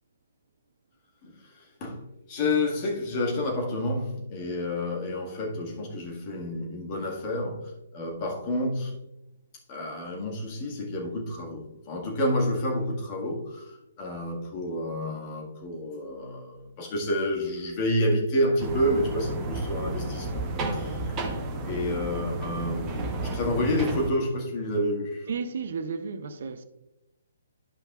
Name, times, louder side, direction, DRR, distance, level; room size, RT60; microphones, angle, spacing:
voice 1, 1.2-9.0 9.7-20.5 20.7-25.3, left 1 dB, 30° left, 1.8 m, -29 dB
sound 1, 18.6-24.1, right 2 dB, 20° right, 1.1 m, -32 dB
voice 2, 25.3-26.6, right 5 dB, 50° right, 0.7 m, -33 dB
12.0 x 5.3 x 2.4 m
figure-of-eight pair, 130°, 0 cm